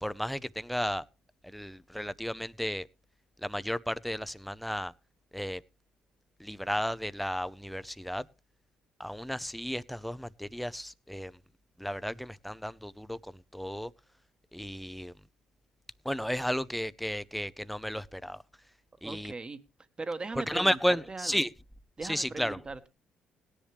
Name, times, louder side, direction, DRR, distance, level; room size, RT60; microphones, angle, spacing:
voice 1, 0.0-1.0 1.4-2.9 3.4-4.9 5.3-5.6 6.4-8.3 9.0-11.4 11.8-13.9 14.5-15.1 16.0-18.4 19.0-19.3 20.5-21.5 22.0-22.6, equal, ahead, 0.7 m, -33 dB
voice 2, 19.0-19.6 20.0-20.8 21.1-21.3 22.0-22.9, right 3 dB, 30° right, 1.4 m, -38 dB
17.5 x 10.5 x 3.4 m
supercardioid pair, 60°, 3 cm